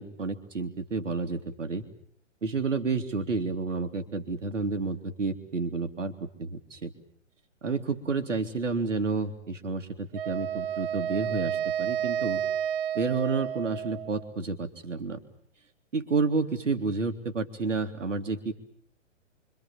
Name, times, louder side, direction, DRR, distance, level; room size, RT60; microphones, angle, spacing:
voice 1, 0.0-1.8 2.4-6.9 7.6-12.4 12.9-15.2 15.9-18.5, right 4 dB, 75° right, 7 dB, 2.8 m, -30 dB
Wind instrument woodwind instrument, 10.1-14.3, right 9 dB, 50° right, 1.1 m, -31 dB
27.0 x 25.0 x 7.4 m, 0.64 s
figure-of-eight pair, 120°, 37 cm